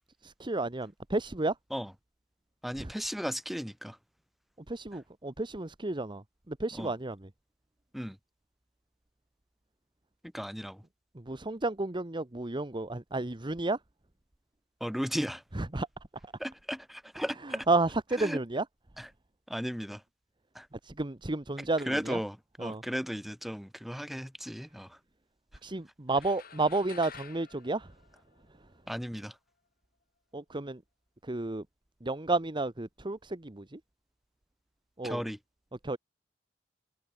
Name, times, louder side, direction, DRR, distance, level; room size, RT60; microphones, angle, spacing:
voice 1, 0.2-1.5 2.8-2.9 4.7-7.3 11.1-13.8 15.5-15.9 17.7-18.6 20.8-22.2 22.6-22.8 25.6-27.9 30.3-30.8 31.2-31.6 32.0-33.8 35.0-35.2 35.8-36.0, right 2 dB, 25° right, 1.1 m, -31 dB
voice 2, 2.6-4.0 6.7-6.9 7.9-8.2 10.3-10.8 14.8-15.4 16.4-17.7 18.2-18.4 19.0-19.1 19.5-20.0 20.5-20.7 21.8-25.0 28.9-29.4 35.0-35.4, equal, ahead, 4.2 m, -35 dB
sound 1, 26.1-28.8, left 7 dB, 50° left, 7.4 m, -50 dB
open air
head